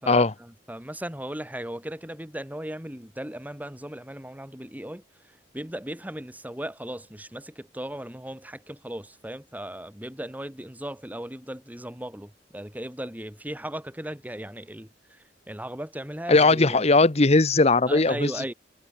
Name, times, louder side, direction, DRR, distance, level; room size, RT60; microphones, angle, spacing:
voice 1, 0.0-5.0 5.5-16.8 17.9-18.5, right 1 dB, 10° right, 2.7 m, -37 dB
voice 2, 16.3-18.5, left 3 dB, 35° left, 1.0 m, -19 dB
head